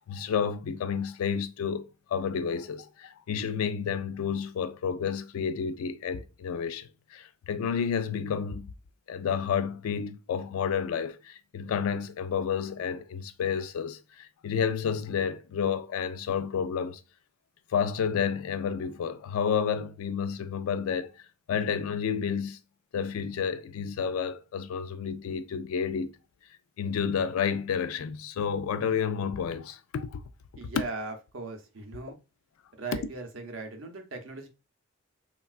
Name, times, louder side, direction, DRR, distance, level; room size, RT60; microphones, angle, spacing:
voice 1, 0.0-8.7 9.1-17.0 17.7-21.1 21.5-22.6 22.9-26.1 26.8-30.2, left 7 dB, 85° left, 0.3 m, -30 dB
voice 2, 30.6-32.2 32.7-34.5, right 3 dB, 70° right, 0.6 m, -39 dB
3.2 x 2.3 x 2.3 m
head